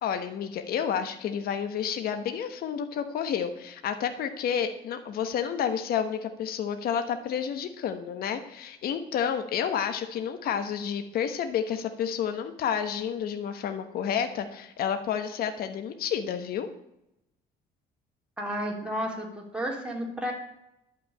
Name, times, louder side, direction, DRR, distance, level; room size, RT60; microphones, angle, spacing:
voice 1, 0.0-16.7, left 8 dB, 65° left, 8 dB, 1.2 m, -30 dB
voice 2, 18.4-20.3, equal, 5° right, -1 dB, 3.6 m, -32 dB
11.5 x 6.0 x 8.8 m, 0.84 s
cardioid pair, 110°, 17 cm